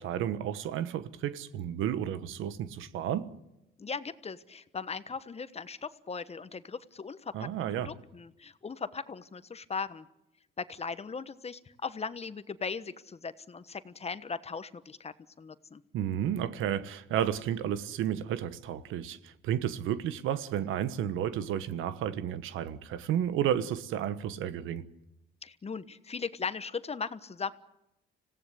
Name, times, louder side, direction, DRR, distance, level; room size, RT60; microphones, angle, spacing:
voice 1, 0.0-3.3 7.3-7.9 15.9-24.8, right 10 dB, 90° right, 1.3 m, -32 dB
voice 2, 3.8-7.5 7.8-10.1 10.6-15.8 25.4-27.5, left 5 dB, 30° left, 1.2 m, -38 dB
26.5 x 17.0 x 8.2 m
cardioid pair, 90°, 20 cm